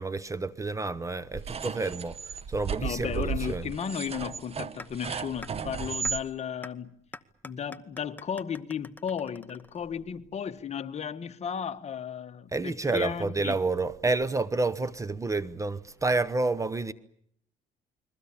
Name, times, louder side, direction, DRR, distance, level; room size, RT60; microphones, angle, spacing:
voice 1, 0.0-2.2 2.5-3.6 12.5-16.9, right 3 dB, 20° right, 1.0 m, -29 dB
sound 1, 1.3-6.2, right 6 dB, 35° right, 1.0 m, -35 dB
voice 2, 2.8-7.0 7.4-13.6, left 8 dB, 40° left, 1.4 m, -34 dB
sound 2, 4.8-4.9 5.4-5.5 6.0-6.1 6.6-6.7 7.1-10.1, left 2 dB, 10° left, 1.0 m, -44 dB
29.5 x 22.0 x 7.2 m
cardioid pair, 110°, 17 cm